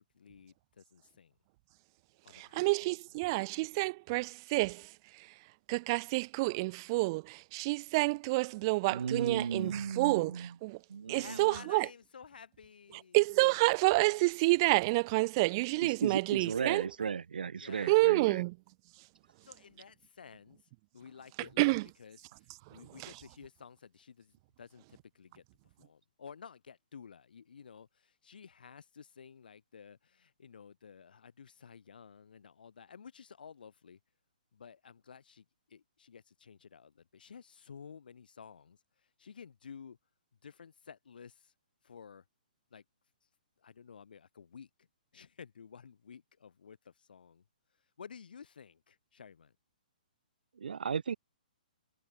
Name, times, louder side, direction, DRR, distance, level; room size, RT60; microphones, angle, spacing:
voice 1, 0.1-1.4 2.2-3.0 11.1-13.3 17.6-18.2 19.4-20.6 20.9-34.0 34.5-40.0 40.4-41.5 41.8-42.2 42.7-42.8 43.6-44.9 45.1-47.4 48.0-49.6, left 6 dB, 75° left, 3.4 m, -53 dB
voice 2, 2.3-4.8 5.7-10.8 11.1-11.9 13.1-16.8 17.9-18.5 21.6-21.8, right 24 dB, 30° right, 0.4 m, -29 dB
voice 3, 8.9-10.5 10.9-11.4 15.8-18.4 50.6-51.1, right 6 dB, 80° right, 1.0 m, -35 dB
hypercardioid pair, 155°, 5 cm